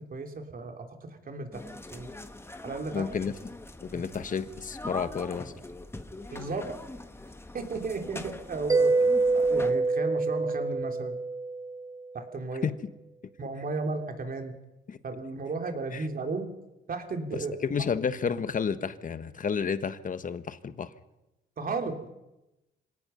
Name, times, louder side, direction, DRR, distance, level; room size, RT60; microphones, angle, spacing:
voice 1, 0.0-1.6 1.9-2.1 2.6-3.1 3.9-4.0 6.3-6.7 7.5-8.9 9.3-11.2 12.1-12.7 13.4-14.5 15.0-16.5 16.9-17.6 21.6-22.0, right 3 dB, 45° right, 4 dB, 3.3 m, -34 dB
sound 1, 1.5-9.7, left 2 dB, 10° left, 1.7 m, -43 dB
voice 2, 2.9-3.3 3.8-5.5 12.6-12.9 14.9-15.0 15.9-16.1 17.3-20.9, left 6 dB, 40° left, 12 dB, 1.4 m, -31 dB
Mallet percussion, 8.7-12.2, right 3 dB, 15° right, 0.6 m, -26 dB
25.5 x 18.5 x 5.7 m, 0.98 s
cardioid pair, 90°, 20 cm